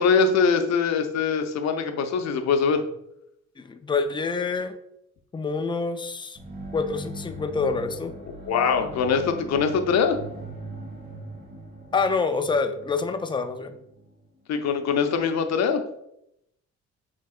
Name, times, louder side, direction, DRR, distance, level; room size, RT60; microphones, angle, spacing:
voice 1, 0.0-2.8 8.5-10.2 14.5-15.8, left 5 dB, 60° left, 7 dB, 0.7 m, -22 dB
voice 2, 3.6-4.8 5.3-6.4 6.7-8.1 11.9-13.8, left 4 dB, 15° left, 8 dB, 0.4 m, -27 dB
sound 1, 6.4-14.1, right 1 dB, 30° right, 1.4 m, -40 dB
6.3 x 3.2 x 2.5 m, 0.78 s
cardioid pair, 90°, 30 cm